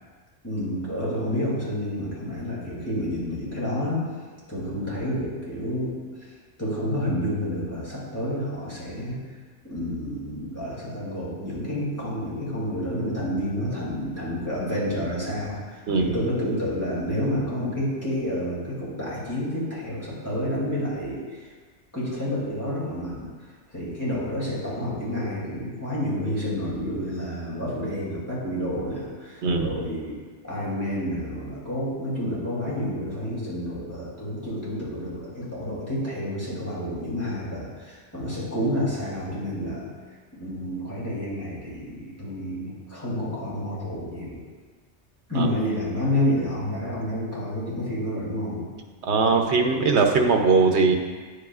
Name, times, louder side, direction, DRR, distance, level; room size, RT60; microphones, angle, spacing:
voice 1, 0.4-4.1 4.5-9.4 9.6-21.5 21.9-44.4 45.3-48.7, equal, 15° left, -8 dB, 2.6 m, -29 dB
voice 2, 49.0-51.0, right 4 dB, 75° right, 4 dB, 1.0 m, -20 dB
9.4 x 8.0 x 2.4 m, 1.5 s
omnidirectional pair, 1.1 m